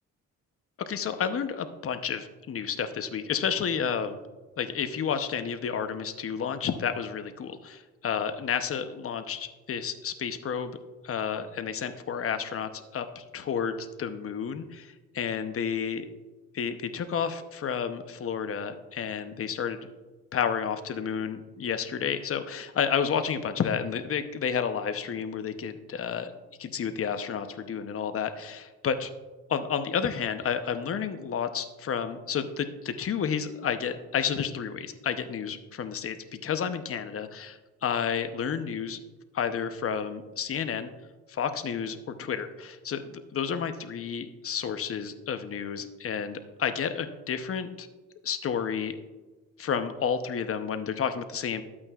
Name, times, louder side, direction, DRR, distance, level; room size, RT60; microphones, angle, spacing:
voice 1, 0.8-4.2 4.6-10.8 11.0-16.1 16.5-19.8 20.3-26.3 26.6-29.1 29.5-36.2 36.4-39.0 39.3-40.9 41.3-47.9 48.2-49.0 49.6-51.6, left 7 dB, 50° left, 9 dB, 0.8 m, -31 dB
12.5 x 8.5 x 2.4 m, 1.2 s
cardioid pair, 90°, 30 cm